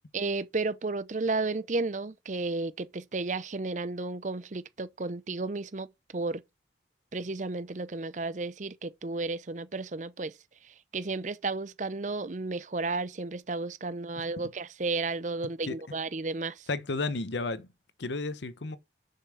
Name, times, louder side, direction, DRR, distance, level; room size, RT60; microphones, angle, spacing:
voice 1, 0.1-5.9 6.1-6.4 7.1-10.4 10.7-16.7, right 3 dB, 45° right, 0.6 m, -33 dB
voice 2, 16.7-17.7 18.0-18.8, left 3 dB, 85° left, 0.8 m, -32 dB
6.9 x 5.6 x 6.2 m
head